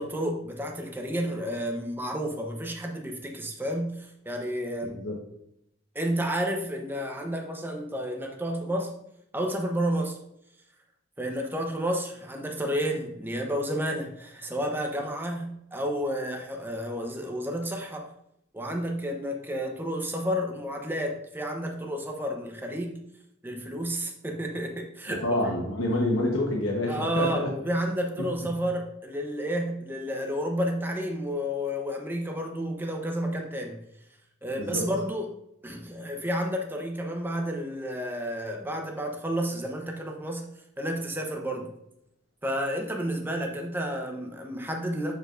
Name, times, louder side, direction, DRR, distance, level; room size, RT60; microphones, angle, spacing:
voice 1, 0.0-5.0 5.9-8.9 9.3-10.2 11.2-18.1 18.5-23.0 23.4-25.5 26.9-33.8 34.4-35.3 35.6-40.5 40.8-41.7 42.4-45.1, equal, 10° right, 2 dB, 0.9 m, -31 dB
voice 2, 25.1-27.5 34.6-34.9, left 1 dB, 85° left, -1 dB, 1.2 m, -27 dB
6.9 x 6.8 x 2.6 m, 0.81 s
head